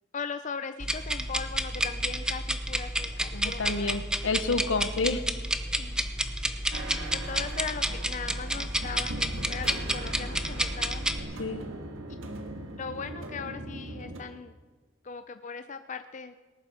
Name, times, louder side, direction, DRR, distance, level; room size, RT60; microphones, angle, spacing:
voice 1, 0.1-4.1 5.8-6.1 6.9-11.1 12.8-14.5 15.0-16.3, left 5 dB, 40° left, 9 dB, 0.5 m, -39 dB
sound 1, 0.8-11.2, right 1 dB, 5° right, 0.8 m, -30 dB
voice 2, 3.3-5.2 11.4-11.7, left 3 dB, 70° left, 11 dB, 1.1 m, -29 dB
sound 2, 6.7-14.2, right 1 dB, 85° right, 1.7 m, -40 dB
19.0 x 11.0 x 6.3 m, 1.3 s
head